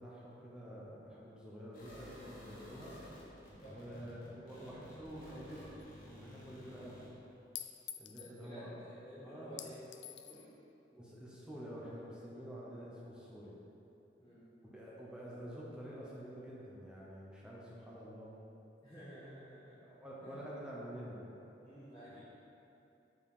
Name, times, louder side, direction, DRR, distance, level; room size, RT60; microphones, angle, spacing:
voice 1, 0.0-2.9 3.7-5.6 6.0-7.0 8.0-8.8 9.2-9.6 10.9-13.6 14.6-18.3 19.8-21.2 22.1-22.2, equal, 5° right, -7 dB, 0.9 m, -48 dB
sound 1, 1.7-7.1, left 1 dB, 55° left, 1.5 m, -53 dB
voice 2, 3.6-4.1 6.6-6.9 8.1-9.8 10.1-10.5 14.2-14.4 18.8-19.8 20.2-20.3 21.6-22.2, equal, 20° left, -13 dB, 1.5 m, -53 dB
Chink clink, 5.8-5.9 7.6-8.4 9.6-10.5, left 11 dB, 70° left, 0.4 m, -47 dB
5.8 x 4.7 x 4.9 m, 2.9 s
head